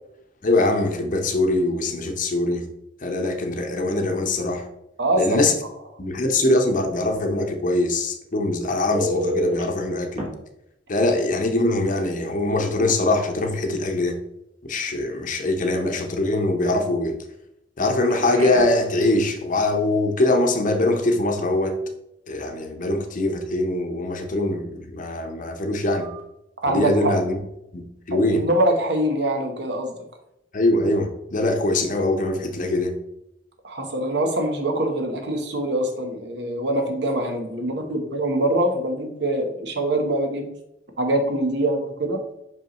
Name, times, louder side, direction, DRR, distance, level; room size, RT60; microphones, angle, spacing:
voice 1, 0.4-2.7 3.0-4.7 5.2-5.6 6.0-10.2 10.9-14.2 14.7-17.2 17.8-21.8 22.3-26.1 26.7-27.4 27.7-27.8 28.1-28.5 30.5-32.9, left 2 dB, 45° left, 4 dB, 0.8 m, -22 dB
voice 2, 5.0-5.4 26.6-27.2 28.1-29.9 33.6-40.5 41.0-42.2, right 1 dB, 65° right, 5 dB, 1.0 m, -24 dB
Telephone, 8.9-9.6 10.2-10.3 12.0-12.2 12.6-12.7 18.0-18.9 26.0-26.2, equal, 35° right, 1.3 m, -28 dB
5.7 x 5.4 x 3.0 m, 0.83 s
head